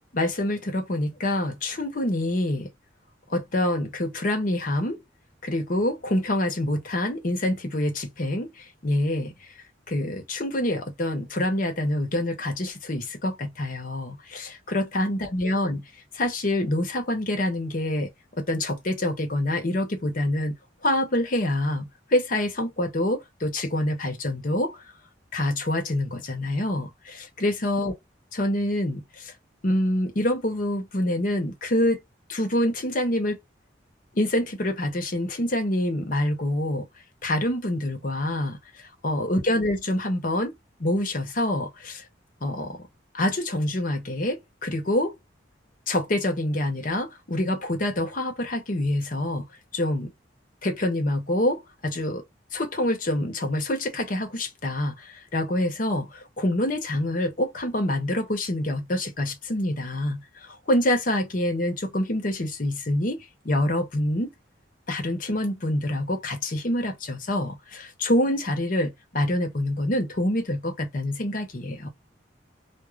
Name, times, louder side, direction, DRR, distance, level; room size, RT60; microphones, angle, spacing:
voice 1, 0.1-2.7 3.3-5.0 5.4-9.3 9.9-15.8 16.1-20.5 20.8-24.8 25.3-27.9 28.3-29.3 29.6-32.0 32.3-33.4 34.1-36.9 37.2-40.5 40.8-42.0 42.4-42.9 43.1-45.2 45.9-49.5 49.7-50.1 50.6-52.2 52.5-64.3 64.9-71.9, left 1 dB, 45° left, 0.8 m, -26 dB
2.4 x 2.0 x 3.0 m
head